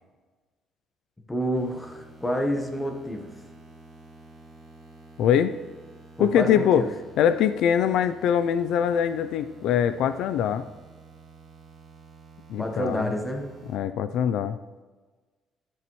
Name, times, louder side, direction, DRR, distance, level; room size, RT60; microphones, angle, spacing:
voice 1, 1.3-3.3 6.2-6.9 12.6-13.5, equal, 10° left, 3 dB, 1.1 m, -28 dB
sound 1, 1.5-13.8, right 3 dB, 30° right, 2.3 m, -50 dB
voice 2, 5.2-5.5 6.2-6.9 7.2-10.7 12.5-13.1 13.7-14.6, left 9 dB, 75° left, 12 dB, 0.4 m, -23 dB
13.0 x 7.7 x 3.1 m, 1.3 s
cardioid pair, 160°, 0 cm